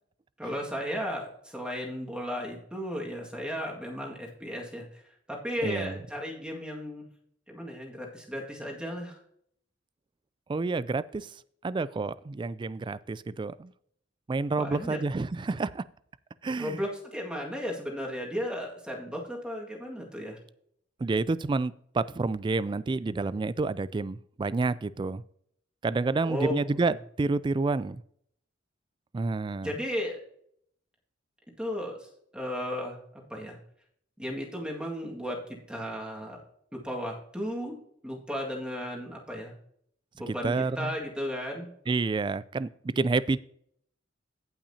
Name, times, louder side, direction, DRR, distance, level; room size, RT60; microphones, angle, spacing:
voice 1, 0.4-5.0 5.3-7.1 7.5-9.2 14.6-15.0 16.6-20.4 26.2-27.0 29.6-30.2 31.6-33.0 33.3-33.6 34.2-36.4 36.7-37.8 38.0-39.5 40.1-41.7, equal, 5° right, 1.9 m, -35 dB
voice 2, 5.6-6.0 10.5-11.3 11.6-13.7 14.3-15.8 16.4-16.8 21.0-25.2 25.8-28.0 29.1-29.7 40.3-40.9 41.9-43.4, right 3 dB, 25° right, 0.3 m, -29 dB
17.0 x 5.8 x 2.8 m
head